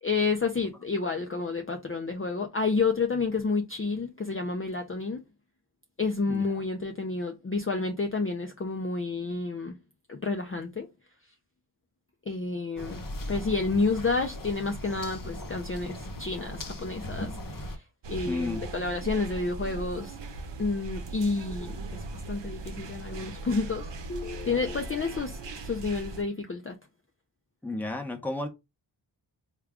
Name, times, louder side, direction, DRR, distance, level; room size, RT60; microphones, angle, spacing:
voice 1, 0.0-5.2 6.0-9.8 10.1-10.9 12.3-13.0 13.3-17.8 18.1-20.2 20.6-26.8, left 4 dB, 30° left, 0.5 m, -30 dB
sound 1, 12.8-17.8, left 1 dB, 45° left, 0.9 m, -38 dB
sound 2, 18.0-26.2, right 2 dB, 65° right, 0.8 m, -39 dB
voice 2, 18.2-18.7 27.6-28.5, left 2 dB, 5° left, 0.9 m, -32 dB
3.4 x 2.3 x 3.4 m
wide cardioid pair, 50°, 47 cm